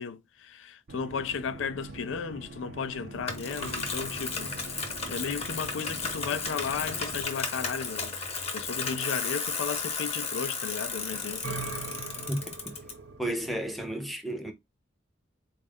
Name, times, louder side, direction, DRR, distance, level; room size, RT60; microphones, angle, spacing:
voice 1, 0.0-11.5, left 6 dB, 80° left, 0.4 m, -35 dB
sound 1, 0.9-7.2, right 2 dB, 55° right, 0.5 m, -44 dB
Bicycle, 3.3-12.9, left 4 dB, 35° left, 0.9 m, -34 dB
sound 2, 3.6-7.3 10.8-13.9, right 3 dB, 80° right, 0.8 m, -43 dB
voice 2, 13.2-14.5, right 1 dB, ahead, 0.6 m, -32 dB
4.0 x 2.4 x 3.5 m
head